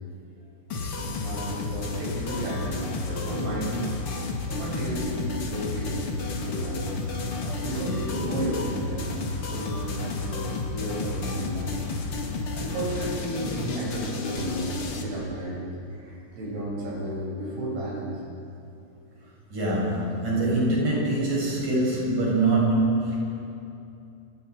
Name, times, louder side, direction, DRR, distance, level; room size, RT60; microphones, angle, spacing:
sound 1, 0.7-15.0, left 3 dB, 55° left, 1.5 m, -32 dB
voice 1, 1.2-3.9 4.5-6.0 6.2-6.9 7.4-11.8 12.5-15.7 16.3-18.2, right 1 dB, 85° right, -5 dB, 9.9 m, -32 dB
voice 2, 19.5-23.2, right 2 dB, 35° right, -5 dB, 9.0 m, -24 dB
29.5 x 28.0 x 5.0 m, 2.7 s
omnidirectional pair, 5.8 m